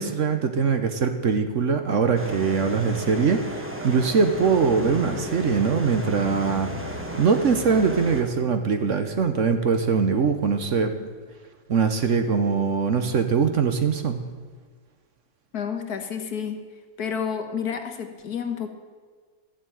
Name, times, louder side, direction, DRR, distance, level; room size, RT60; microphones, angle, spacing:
voice 1, 0.0-6.7 7.2-11.1 11.7-14.2, right 5 dB, 55° right, 7 dB, 1.2 m, -22 dB
sound 1, 2.1-8.2, equal, 10° right, 1.2 m, -34 dB
voice 2, 15.5-16.6 17.0-18.7, left 7 dB, 70° left, 6 dB, 1.7 m, -30 dB
13.0 x 7.7 x 9.2 m, 1.5 s
omnidirectional pair, 1.7 m